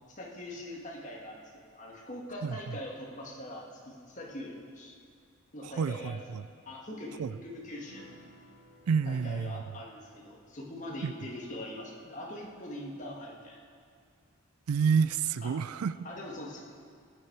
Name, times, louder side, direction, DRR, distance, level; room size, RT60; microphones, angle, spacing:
voice 1, 0.1-5.0 5.5-6.2 6.7-8.1 9.0-13.6 15.4-15.6 16.0-16.6, left 1 dB, 35° left, -3 dB, 1.9 m, -42 dB
voice 2, 5.6-6.4 7.2-7.3 8.9-9.6 11.0-11.1 14.7-15.9, right 6 dB, 90° right, 15 dB, 0.4 m, -29 dB
sound 1, 7.7-14.5 14.8-14.9 15.2-15.4, equal, 70° right, 2.9 m, -61 dB
18.5 x 9.2 x 4.7 m, 2.2 s
head